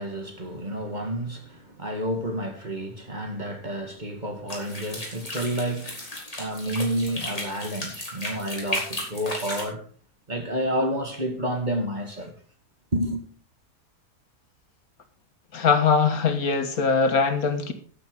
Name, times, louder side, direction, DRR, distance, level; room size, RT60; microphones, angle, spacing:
voice 1, 0.0-6.1 6.4-9.9 10.3-12.4 12.9-13.2, right 1 dB, 30° right, 2.0 m, -30 dB
sound 1, 4.5-9.6, left 1 dB, 20° left, 4.0 m, -34 dB
voice 2, 15.5-17.7, left 5 dB, 65° left, 1.7 m, -21 dB
12.5 x 8.4 x 5.2 m
omnidirectional pair, 1.7 m